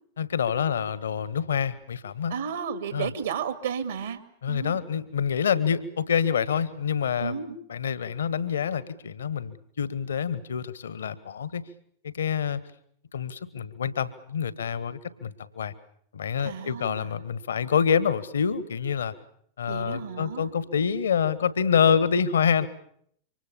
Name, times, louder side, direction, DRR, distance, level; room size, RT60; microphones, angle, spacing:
voice 1, 0.2-2.3 2.9-3.1 4.4-7.4 7.7-11.6 12.0-12.6 13.1-15.7 16.1-19.1 19.6-22.7, left 7 dB, 65° left, 16 dB, 1.6 m, -27 dB
voice 2, 2.3-4.2 4.5-4.8 7.2-7.6 16.4-17.1 19.7-20.5, right 7 dB, 65° right, 9 dB, 2.3 m, -33 dB
27.5 x 25.0 x 7.1 m, 0.66 s
figure-of-eight pair, 90°, 0 cm